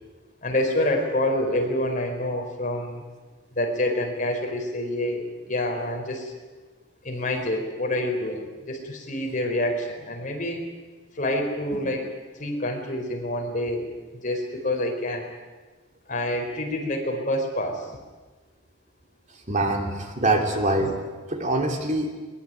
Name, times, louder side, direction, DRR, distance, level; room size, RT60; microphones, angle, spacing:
voice 1, 0.4-3.0 3.6-6.3 7.0-10.7 11.1-12.1 12.4-13.9 14.2-15.3 16.1-17.9 19.6-19.8 20.8-20.9, left 1 dB, 40° left, 2 dB, 4.8 m, -27 dB
voice 2, 19.5-21.0 21.3-22.1, right 2 dB, 40° right, 3 dB, 3.0 m, -24 dB
22.0 x 21.5 x 9.4 m, 1.3 s
head